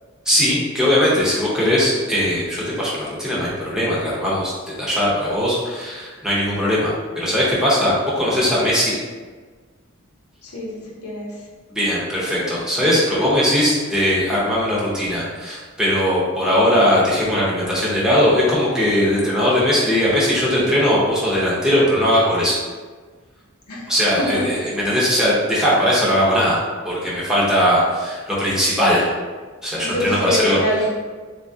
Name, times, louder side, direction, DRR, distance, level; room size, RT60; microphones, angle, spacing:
voice 1, 0.3-9.0 11.7-22.6 23.9-26.6 26.8-29.1 29.6-30.6, equal, 5° right, -7 dB, 0.8 m, -19 dB
voice 2, 10.4-11.3 23.7-23.9 24.3-24.4 29.8-30.9, left 1 dB, 90° left, -3 dB, 0.8 m, -24 dB
4.1 x 2.3 x 2.7 m, 1.4 s
head